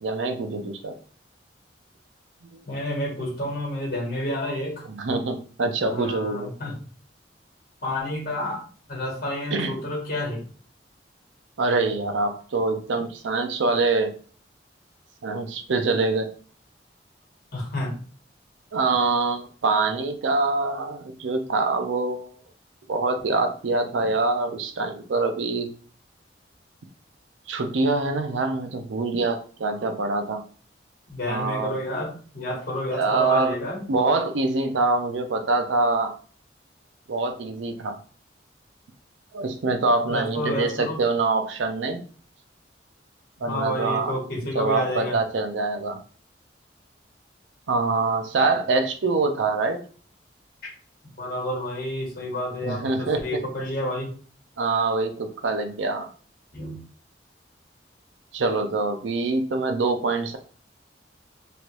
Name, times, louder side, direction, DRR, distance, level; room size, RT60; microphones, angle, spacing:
voice 1, 0.0-0.9 2.5-2.6 4.9-6.5 9.5-9.7 11.6-14.1 15.2-16.3 18.7-22.3 22.9-25.7 27.5-30.4 31.2-31.8 32.9-33.6 33.9-36.2 37.1-38.0 39.3-42.0 43.4-44.1 44.5-46.0 47.7-49.8 52.6-53.2 54.6-56.1 58.3-60.4, right 3 dB, 85° right, 6 dB, 0.5 m, -24 dB
voice 2, 2.7-4.8 5.8-6.7 7.8-8.6 8.9-10.4 17.5-18.0 31.1-33.8 40.1-41.0 43.5-45.2 51.2-54.1 56.5-56.8, left 1 dB, 50° left, -3 dB, 1.4 m, -30 dB
3.1 x 2.5 x 3.1 m, 0.42 s
head